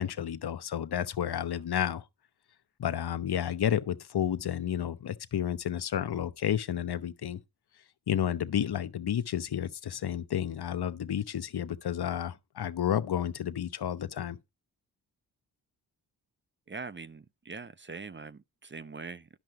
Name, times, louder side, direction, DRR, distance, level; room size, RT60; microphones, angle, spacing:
voice 1, 0.0-2.0 2.8-7.4 8.1-14.4, left 10 dB, 65° left, 1.0 m, -31 dB
voice 2, 16.7-19.4, right 4 dB, 25° right, 0.7 m, -43 dB
10.5 x 6.8 x 4.7 m
supercardioid pair, 45°, 41 cm